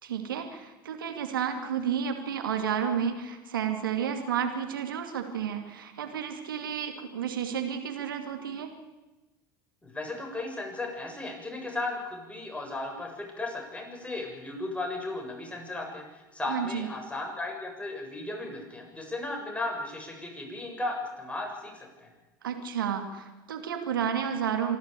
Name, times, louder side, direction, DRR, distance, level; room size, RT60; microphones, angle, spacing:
voice 1, 0.0-8.7 16.5-16.9 22.4-24.8, right 8 dB, 90° right, 6 dB, 2.4 m, -31 dB
voice 2, 9.8-22.1, left 2 dB, 10° left, 1 dB, 7.3 m, -35 dB
26.0 x 12.0 x 8.5 m, 1.1 s
hypercardioid pair, 80°, 11 cm